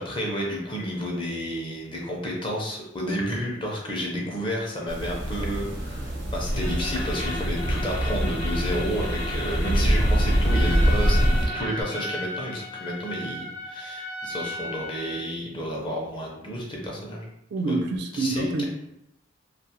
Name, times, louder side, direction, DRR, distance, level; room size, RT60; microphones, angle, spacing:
voice 1, 0.0-11.2 11.5-17.3 17.7-17.8 18.1-18.6, equal, 25° left, -2 dB, 0.5 m, -31 dB
sound 1, 4.9-11.5, equal, 85° right, 0.7 m, -24 dB
sound 2, 6.5-11.8, left 2 dB, 45° left, 0.9 m, -35 dB
Trumpet, 10.3-15.2, left 1 dB, 75° left, 0.6 m, -35 dB
voice 2, 17.5-18.6, right 3 dB, 60° right, 3 dB, 0.3 m, -27 dB
2.4 x 2.3 x 2.8 m, 0.81 s
head